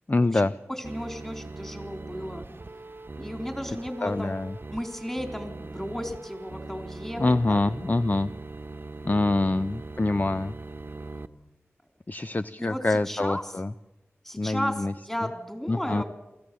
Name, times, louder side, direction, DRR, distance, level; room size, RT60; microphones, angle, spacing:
voice 1, 0.1-0.5 4.0-4.5 7.2-8.3 9.0-10.5 12.1-13.7 14.4-14.9 15.2-15.3 15.7-16.0, left 2 dB, 35° left, 12 dB, 0.6 m, -25 dB
voice 2, 0.7-2.5 3.1-4.4 4.7-7.2 7.5-7.8 12.6-13.4 14.2-16.0, equal, 10° left, 5 dB, 3.9 m, -34 dB
sound 1, 0.8-11.3, right 3 dB, 50° right, 1.1 m, -41 dB
23.5 x 16.0 x 7.7 m, 1.0 s
cardioid pair, 40°, 5 cm